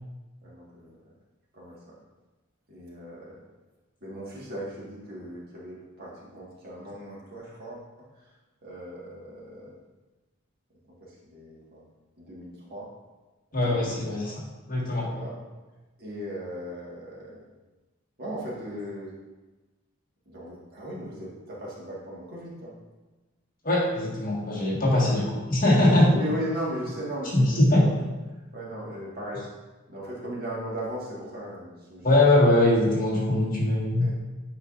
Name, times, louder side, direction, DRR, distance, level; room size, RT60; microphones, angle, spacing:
voice 1, 0.4-1.0 1.5-1.9 2.7-3.4 4.0-8.3 8.6-9.8 10.9-11.9 12.2-12.9 13.6-14.3 15.1-15.4 16.0-17.5 18.2-19.1 20.2-22.7 24.8-25.3 26.1-28.0 28.5-29.5 29.9-32.4 34.0-34.1, equal, 45° right, -6 dB, 1.7 m, -37 dB
voice 2, 13.5-15.1 23.6-25.2 25.5-26.1 27.3-27.9 32.0-34.1, left 1 dB, 40° left, -5 dB, 1.6 m, -21 dB
8.6 x 5.0 x 2.5 m, 1.2 s
head